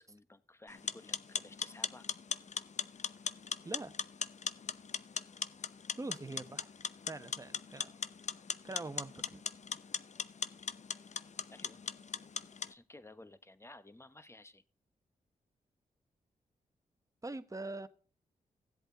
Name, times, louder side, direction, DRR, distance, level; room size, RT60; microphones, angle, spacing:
voice 1, 0.0-2.1 11.5-11.8 12.7-14.6, left 2 dB, 15° left, 1.2 m, -55 dB
sound 1, 0.7-12.7, left 6 dB, 50° left, 0.7 m, -40 dB
voice 2, 3.6-3.9 6.0-6.7 7.0-8.0 8.6-9.4 12.4-12.5 17.2-17.9, right 2 dB, 20° right, 1.2 m, -43 dB
16.0 x 7.9 x 4.0 m
cardioid pair, 50°, 15 cm